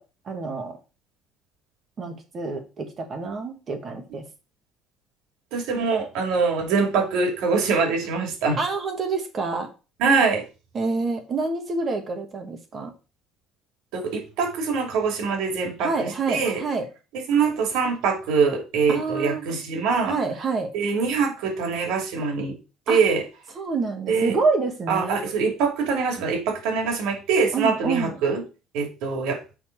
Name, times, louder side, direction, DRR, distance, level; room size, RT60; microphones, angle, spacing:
voice 1, 0.2-0.8 2.0-4.2 8.6-9.7 10.7-12.9 15.8-16.9 18.9-19.5 20.1-20.7 22.9-23.0 23.5-25.2 27.5-28.1, right 4 dB, 30° right, 5 dB, 1.5 m, -27 dB
voice 2, 5.5-8.6 10.0-10.4 13.9-16.6 17.3-20.2 20.7-22.6 22.9-23.2 24.1-24.4 24.9-28.4 28.7-29.4, right 5 dB, 85° right, 3 dB, 2.5 m, -23 dB
7.1 x 4.3 x 4.6 m, 0.31 s
cardioid pair, 165°, 0 cm